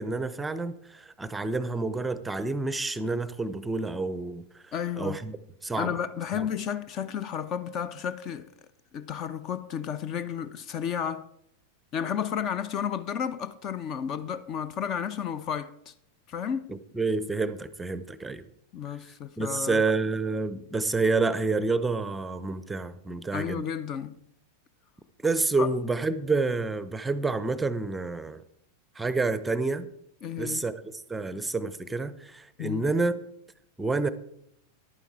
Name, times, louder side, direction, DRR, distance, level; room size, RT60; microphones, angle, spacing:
voice 1, 0.0-5.4 5.6-6.0 6.3-6.5 16.7-18.5 19.4-23.6 25.2-28.4 29.0-29.9 30.4-33.1 33.8-34.1, right 3 dB, 10° right, 0.6 m, -29 dB
voice 2, 4.7-5.2 5.8-8.5 8.9-11.3 11.9-15.9 16.3-16.7 18.7-19.8 23.3-24.2 25.6-25.7 30.2-30.7 32.6-32.9, left 8 dB, 35° left, 0.5 m, -32 dB
11.0 x 9.2 x 4.7 m
figure-of-eight pair, 90°, 0 cm